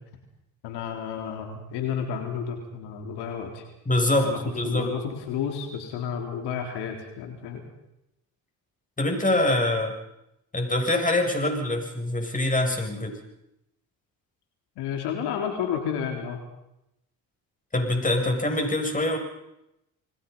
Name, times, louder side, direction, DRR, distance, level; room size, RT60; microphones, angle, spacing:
voice 1, 0.6-3.6 4.2-4.4 4.6-7.6 14.8-16.4, left 7 dB, 85° left, 3 dB, 4.0 m, -31 dB
voice 2, 3.9-4.9 9.0-9.9 10.5-13.2 17.7-19.2, left 1 dB, 20° left, 3 dB, 7.6 m, -24 dB
28.5 x 21.0 x 5.6 m, 0.85 s
supercardioid pair, 65°, 39 cm